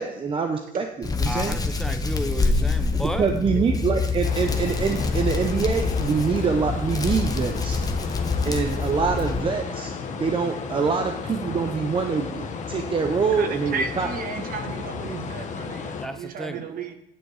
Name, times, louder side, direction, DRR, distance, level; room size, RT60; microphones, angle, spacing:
voice 1, 0.0-1.6 3.2-7.8 8.4-14.1, right 5 dB, 30° right, 5 dB, 0.7 m, -25 dB
Hands, 1.0-9.4, left 3 dB, 20° left, 1.0 m, -26 dB
voice 2, 1.3-3.3 16.0-16.6, equal, ahead, 7 dB, 0.7 m, -32 dB
sound 1, 4.2-16.1, left 5 dB, 45° left, 1.2 m, -33 dB
voice 3, 13.3-16.9, right 5 dB, 55° right, 7 dB, 1.2 m, -34 dB
9.1 x 7.7 x 4.9 m, 0.84 s
cardioid pair, 110°, 17 cm